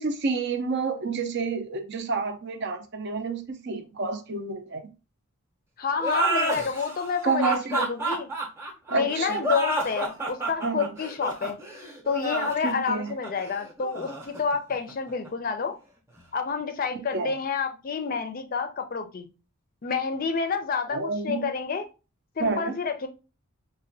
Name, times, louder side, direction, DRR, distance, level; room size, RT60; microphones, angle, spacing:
voice 1, 0.0-4.8 7.2-7.9 8.9-9.4 10.6-10.9 12.6-13.1 16.9-17.3 20.9-21.4 22.4-22.7, right 4 dB, 50° right, 0.5 m, -29 dB
voice 2, 5.8-8.3 8.9-11.6 12.1-15.8 16.3-19.3 19.8-21.9 22.4-23.1, left 5 dB, 40° left, 0.4 m, -29 dB
sound 1, 6.0-15.3, right 2 dB, 10° right, 0.7 m, -30 dB
5.2 x 2.1 x 2.6 m
head